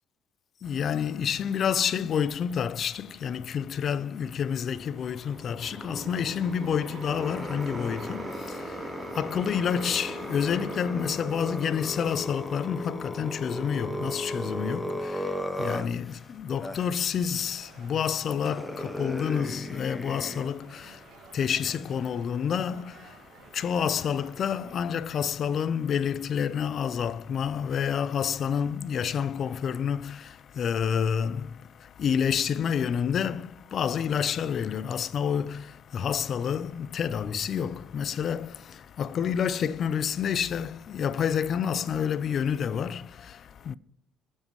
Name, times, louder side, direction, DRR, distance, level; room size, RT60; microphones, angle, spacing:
voice 1, 0.6-43.7, left 7 dB, 45° left, 0.6 m, -29 dB
sound 1, 4.7-12.6, right 2 dB, 30° right, 3.5 m, -42 dB
sound 2, 7.1-16.2 16.6-16.9 17.9-18.0 18.4-20.4, left 1 dB, 5° left, 1.0 m, -36 dB
sound 3, 17.4-24.8, right 5 dB, 55° right, 1.9 m, -53 dB
22.0 x 7.5 x 3.2 m
cardioid pair, 100°, 0 cm